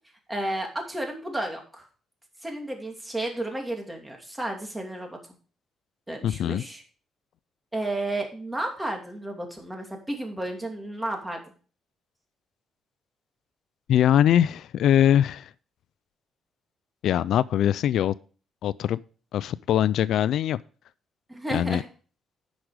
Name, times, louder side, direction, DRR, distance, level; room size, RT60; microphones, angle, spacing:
voice 1, 0.3-1.9 2.4-5.2 6.1-6.8 7.7-11.4 21.3-21.8, right 1 dB, 10° right, 2 dB, 2.7 m, -32 dB
voice 2, 6.2-6.6 13.9-15.5 17.0-18.1 18.6-19.0 19.3-20.6 21.5-21.8, left 10 dB, 75° left, 18 dB, 0.3 m, -22 dB
10.0 x 6.1 x 4.9 m, 0.39 s
cardioid pair, 90°, 0 cm